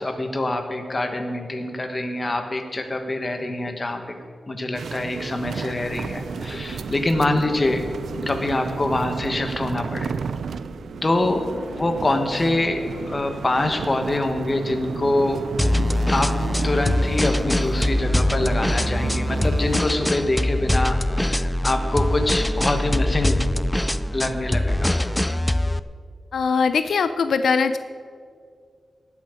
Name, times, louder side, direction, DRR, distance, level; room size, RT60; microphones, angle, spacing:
voice 1, 0.0-4.0 4.5-7.8 8.3-10.1 11.0-11.4 11.7-12.8 13.1-15.4 16.1-16.3 16.6-23.4 24.1-24.9, left 2 dB, 25° left, 6 dB, 1.4 m, -25 dB
sound 1, 4.7-19.8, right 6 dB, 85° right, 0.3 m, -33 dB
sound 2, 5.8-25.7, left 1 dB, 70° left, 1.6 m, -44 dB
sound 3, 15.6-25.8, left 1 dB, 10° left, 0.4 m, -23 dB
voice 2, 26.3-27.8, left 5 dB, 85° left, 11 dB, 0.4 m, -21 dB
18.0 x 8.4 x 5.1 m, 2.2 s
wide cardioid pair, 120°, 0 cm